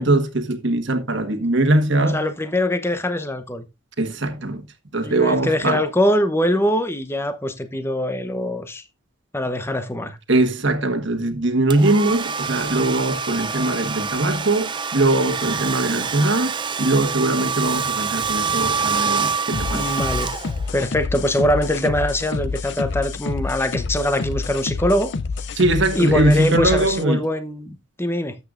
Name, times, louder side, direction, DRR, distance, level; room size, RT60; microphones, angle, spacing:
voice 1, 0.0-2.2 4.0-4.6 4.9-5.8 10.3-16.5 16.8-19.9 25.5-27.2, right 2 dB, 55° right, 1.4 m, -21 dB
voice 2, 2.1-3.6 5.0-8.8 9.3-10.2 19.7-20.3 20.7-25.1 25.9-28.4, left 1 dB, 10° left, 0.8 m, -23 dB
Domestic sounds home sounds, 11.7-20.9, right 5 dB, 20° right, 0.4 m, -26 dB
sound 1, 19.5-27.0, left 4 dB, 55° left, 0.5 m, -28 dB
12.5 x 8.0 x 2.5 m
head